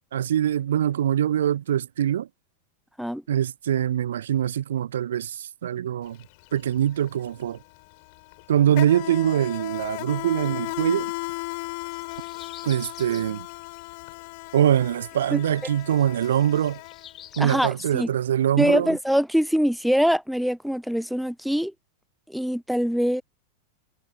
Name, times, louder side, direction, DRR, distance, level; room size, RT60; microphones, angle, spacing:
voice 1, 0.1-2.3 3.3-6.2 6.5-7.6 8.5-11.1 12.6-13.5 14.5-16.8 17.4-19.0, right 10 dB, 60° right, 0.6 m, -23 dB
Insect, 6.1-6.2 6.5-17.5, left 29 dB, 45° left, 3.7 m, -36 dB
sound 1, 11.8-13.3 15.5-18.0, left 10 dB, 30° left, 2.7 m, -47 dB
voice 2, 17.4-18.1 18.6-21.7 22.3-23.2, equal, ahead, 0.6 m, -23 dB
figure-of-eight pair, 90°, 0 cm